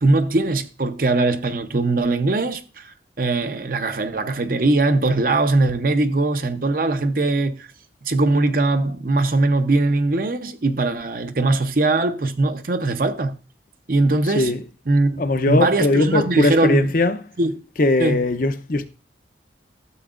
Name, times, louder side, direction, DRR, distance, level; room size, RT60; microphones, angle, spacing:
voice 1, 0.0-7.7 8.0-13.3 13.9-14.5 14.9-15.2 15.5-16.9 17.4-17.5 18.0-18.2, right 2 dB, 50° right, 0.7 m, -20 dB
voice 2, 15.2-17.2 17.8-18.9, left 2 dB, 45° left, 0.6 m, -19 dB
12.5 x 7.8 x 2.5 m
head